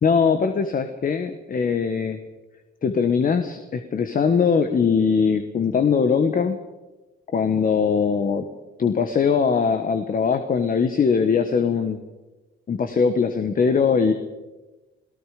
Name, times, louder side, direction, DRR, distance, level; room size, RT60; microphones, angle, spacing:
voice 1, 0.0-2.2 2.8-6.6 7.3-8.4 8.8-12.0 12.7-14.1, left 6 dB, 45° left, 8 dB, 1.5 m, -21 dB
29.0 x 18.0 x 5.1 m, 1.1 s
cardioid pair, 90°, 20 cm